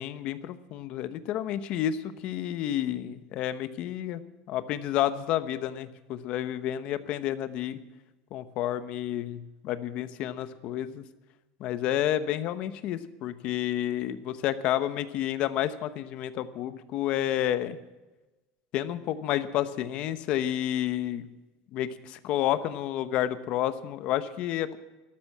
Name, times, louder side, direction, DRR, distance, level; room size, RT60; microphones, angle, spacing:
voice 1, 0.0-4.2 4.5-7.8 8.3-11.0 11.6-17.8 18.7-21.3 21.7-24.8, left 12 dB, 45° left, 13 dB, 0.9 m, -30 dB
13.0 x 12.5 x 7.3 m, 1.1 s
cardioid pair, 175°, 3 cm